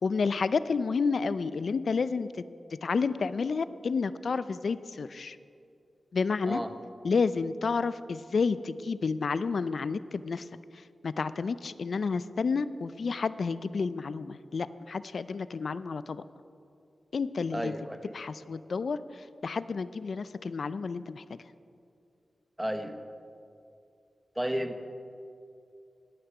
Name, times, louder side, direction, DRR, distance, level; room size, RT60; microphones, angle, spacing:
voice 1, 0.0-2.3 2.8-5.4 6.1-6.6 7.0-10.5 11.0-16.2 17.1-17.7 18.1-21.4, left 4 dB, 70° left, 15 dB, 0.4 m, -30 dB
voice 2, 17.5-18.2 22.6-23.0 24.4-24.8, equal, 10° right, 8 dB, 0.9 m, -33 dB
17.5 x 6.6 x 6.0 m, 2.5 s
cardioid pair, 70°, 0 cm